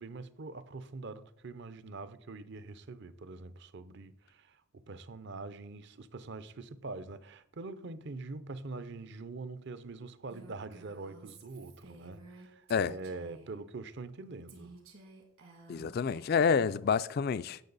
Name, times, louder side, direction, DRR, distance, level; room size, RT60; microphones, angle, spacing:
voice 1, 0.0-14.8, right 3 dB, 50° right, 0.6 m, -44 dB
Female speech woman speaking, 10.3-13.6 14.5-16.7, right 2 dB, 70° right, 2.1 m, -54 dB
voice 2, 15.7-17.6, left 6 dB, 45° left, 0.3 m, -28 dB
16.0 x 6.0 x 4.0 m
head